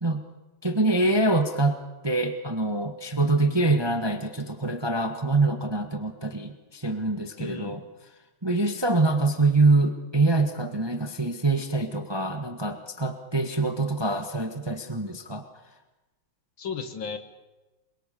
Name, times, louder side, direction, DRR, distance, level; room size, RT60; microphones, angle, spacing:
voice 1, 0.6-1.8 2.0-7.8 8.4-15.4, right 2 dB, 15° right, 7 dB, 1.2 m, -25 dB
voice 2, 7.4-7.8 16.6-17.2, left 6 dB, 65° left, 8 dB, 2.5 m, -34 dB
27.0 x 23.0 x 7.0 m, 1.1 s
omnidirectional pair, 2.4 m